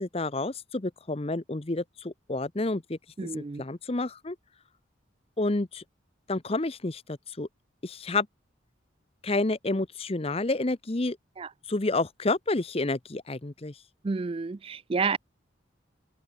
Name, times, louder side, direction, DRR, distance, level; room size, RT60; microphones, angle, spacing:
voice 1, 0.0-4.4 5.4-5.8 6.3-7.5 7.8-8.3 9.2-11.2 11.7-13.8, left 2 dB, 30° left, 0.8 m, -29 dB
voice 2, 3.2-3.6 11.4-11.5 14.0-15.2, right 4 dB, 30° right, 0.4 m, -30 dB
head